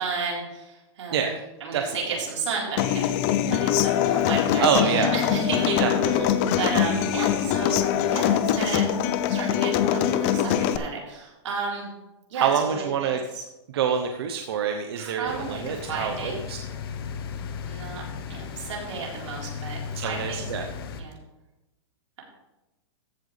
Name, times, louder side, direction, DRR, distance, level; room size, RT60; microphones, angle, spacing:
voice 1, 0.0-1.3 1.6-6.2 6.5-8.9 9.2-11.9 12.3-13.1 13.3-13.4 15.0-16.4 17.6-18.0 18.3-20.4 21.0-21.2, right 4 dB, 80° right, -3 dB, 4.1 m, -33 dB
voice 2, 1.7-2.2 4.6-5.2 5.8-6.3 12.3-13.2 13.7-16.6 19.9-20.7, right 7 dB, 55° right, 5 dB, 0.9 m, -26 dB
Human voice / Acoustic guitar, 2.8-10.8, left 10 dB, 25° left, 0.5 m, -23 dB
sound 1, 15.3-21.0, left 6 dB, 50° left, 1.1 m, -36 dB
14.0 x 8.0 x 3.4 m, 1.0 s
supercardioid pair, 170°, 15 cm